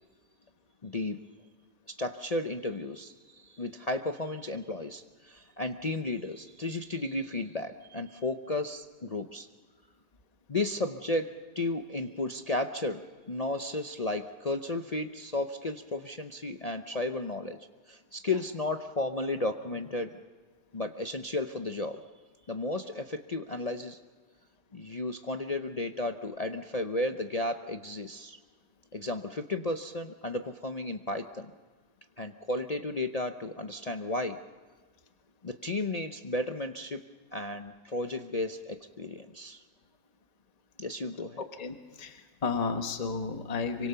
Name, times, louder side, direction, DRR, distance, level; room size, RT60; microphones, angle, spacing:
voice 1, 0.8-1.2 1.9-9.5 10.5-17.6 17.9-20.1 20.7-22.0 22.5-24.0 24.7-28.4 28.9-31.5 32.2-34.4 35.4-37.0 37.3-39.6 40.8-41.4, left 2 dB, 60° left, 5 dB, 0.4 m, -33 dB
voice 2, 41.4-43.9, left 5 dB, 25° left, 6 dB, 1.3 m, -33 dB
26.5 x 24.5 x 5.7 m, 1.5 s
omnidirectional pair, 1.9 m